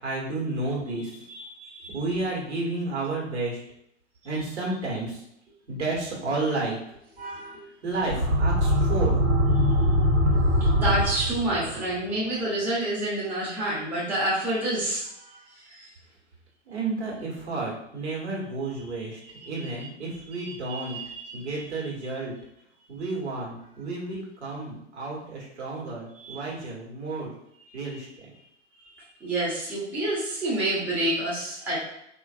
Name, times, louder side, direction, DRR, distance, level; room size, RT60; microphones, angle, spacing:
voice 1, 0.0-1.1 1.9-3.6 4.2-5.2 5.7-6.8 7.8-9.2 16.7-21.0 21.3-22.3 22.9-27.3 27.7-28.3, right 2 dB, 60° right, -3 dB, 1.3 m, -31 dB
voice 2, 1.3-2.0 7.2-7.6 10.8-15.1 15.8-15.9 20.4-21.4 26.2-26.4 29.2-31.8, right 1 dB, 5° right, -7 dB, 0.4 m, -28 dB
sound 1, 8.0-11.8, equal, 80° right, 0.9 m, -22 dB
3.4 x 2.4 x 2.4 m, 0.77 s
figure-of-eight pair, 110°, 37 cm